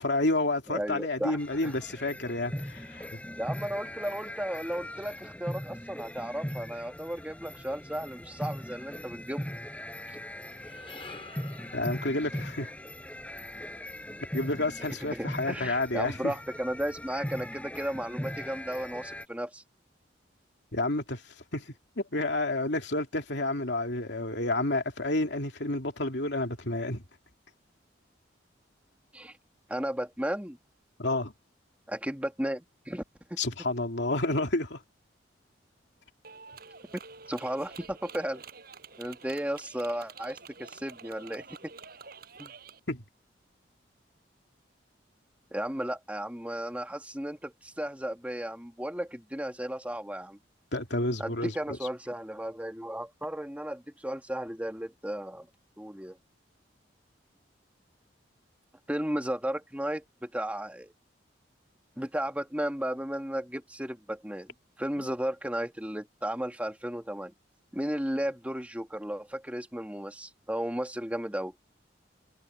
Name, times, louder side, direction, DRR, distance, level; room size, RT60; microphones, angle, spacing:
voice 1, 0.0-3.1 11.7-12.7 14.3-16.3 20.7-21.2 21.5-27.0 31.0-31.3 33.4-34.8 42.9-43.0 50.7-51.5, left 2 dB, 70° left, 2.8 m, -30 dB
voice 2, 0.7-1.4 1.6-1.7 3.4-9.5 15.1-19.6 29.1-29.3 29.7-30.6 31.9-33.0 33.3-33.4 37.3-38.4 39.0-41.7 42.4-42.5 45.5-50.4 51.2-55.5 55.8-56.2 58.9-60.9 62.0-67.3 67.7-71.5, equal, 10° right, 2.1 m, -34 dB
sound 1, 1.4-19.3, equal, 10° left, 5.8 m, -40 dB
sound 2, 10.3-14.7, left 4 dB, 30° left, 6.2 m, -51 dB
Clapping, 36.2-42.8, right 5 dB, 55° right, 7.7 m, -48 dB
head